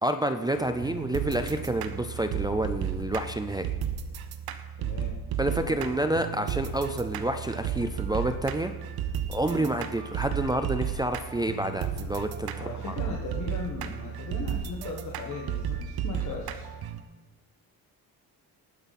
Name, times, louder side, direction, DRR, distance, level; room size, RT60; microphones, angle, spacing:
voice 1, 0.0-3.7 5.4-8.7 9.3-12.9, right 1 dB, 10° right, 6 dB, 0.4 m, -29 dB
sound 1, 0.5-17.0, right 8 dB, 70° right, 1.0 m, -34 dB
voice 2, 4.8-5.9 9.4-9.7 12.5-16.7, left 4 dB, 45° left, -2 dB, 1.5 m, -38 dB
19.0 x 9.3 x 4.2 m, 1.3 s
cardioid pair, 180°, 38 cm